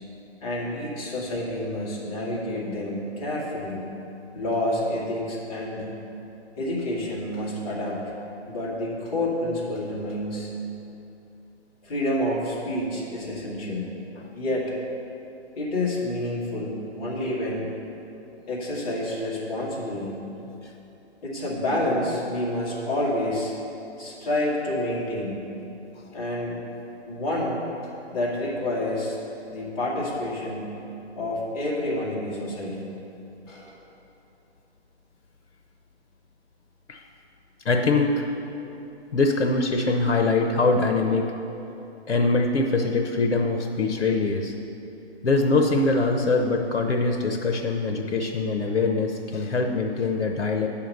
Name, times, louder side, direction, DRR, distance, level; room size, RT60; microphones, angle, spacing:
voice 1, 0.4-3.8 4.3-6.0 6.6-8.1 8.5-10.5 11.8-13.9 14.3-14.7 15.6-17.7 18.5-20.1 21.2-23.5 24.0-25.4 26.1-26.6 27.1-29.2 29.5-30.8 31.2-32.9 33.5-33.7, left 1 dB, 30° left, -6 dB, 2.2 m, -28 dB
voice 2, 37.6-38.3 39.1-41.3 42.1-44.5 45.2-50.7, left 3 dB, 90° left, 3 dB, 0.9 m, -23 dB
8.4 x 5.8 x 6.5 m, 2.9 s
hypercardioid pair, 155°, 34 cm